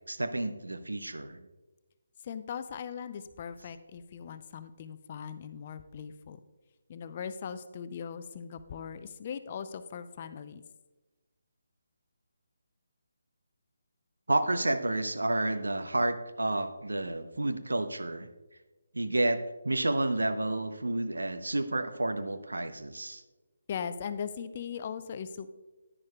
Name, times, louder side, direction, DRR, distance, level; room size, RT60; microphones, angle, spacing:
voice 1, 0.0-1.5 14.3-18.3 18.9-23.2, right 2 dB, 75° right, 9 dB, 0.7 m, -30 dB
voice 2, 2.2-6.4 6.9-10.6 23.7-25.5, left 7 dB, 35° left, 11 dB, 0.5 m, -39 dB
10.5 x 9.9 x 2.3 m, 1.1 s
figure-of-eight pair, 150°, 0 cm